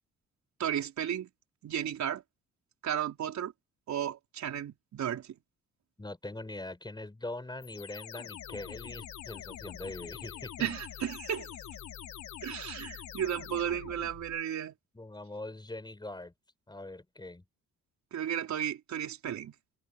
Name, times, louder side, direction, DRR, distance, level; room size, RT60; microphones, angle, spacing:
voice 1, 0.6-1.3 1.6-2.2 2.8-3.5 3.9-5.3 10.6-11.5 12.4-14.8 18.1-19.5, right 9 dB, 65° right, 4.4 m, -34 dB
voice 2, 6.0-10.7 14.9-16.3 16.7-17.4, left 2 dB, 15° left, 5.6 m, -42 dB
sound 1, 7.6-14.4, left 10 dB, 70° left, 3.6 m, -45 dB
cardioid pair, 90°, 30 cm